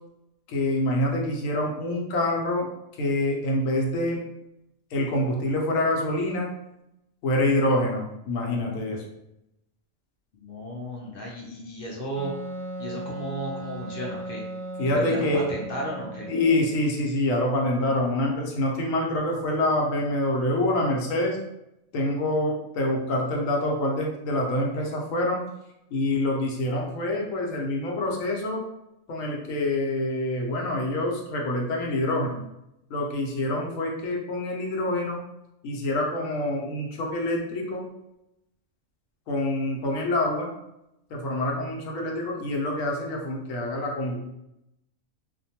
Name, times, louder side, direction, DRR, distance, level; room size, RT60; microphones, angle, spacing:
voice 1, 0.5-2.7 3.0-4.2 4.9-6.5 7.2-9.0 14.8-15.5 16.3-21.4 21.9-25.4 25.9-28.6 29.1-32.4 32.9-35.2 35.6-37.9 39.3-40.5 41.1-44.2, left 1 dB, 85° left, 0 dB, 1.0 m, -26 dB
voice 2, 10.3-12.3 12.8-14.4 14.9-16.3, equal, 60° left, -2 dB, 0.6 m, -34 dB
Wind instrument woodwind instrument, 12.2-16.8, right 2 dB, 90° right, 1.0 m, -37 dB
2.5 x 2.2 x 2.7 m, 0.86 s
omnidirectional pair, 1.3 m